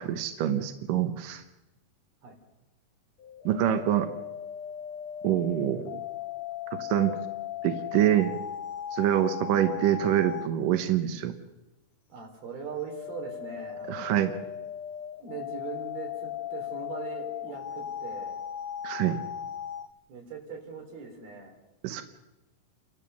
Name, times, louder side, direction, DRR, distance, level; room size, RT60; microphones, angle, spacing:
voice 1, 0.0-1.4 3.5-4.1 5.2-6.0 6.8-7.2 7.6-8.3 8.9-11.4 13.9-14.3 18.8-19.2 21.8-22.0, right 11 dB, 70° right, 8 dB, 2.5 m, -25 dB
sound 1, 3.2-10.6 12.6-19.9, left 9 dB, 85° left, 1.5 m, -38 dB
voice 2, 12.1-14.3 15.2-18.3 20.1-21.5, right 5 dB, 85° right, 2 dB, 5.6 m, -40 dB
29.5 x 12.5 x 6.9 m, 1.0 s
omnidirectional pair, 4.2 m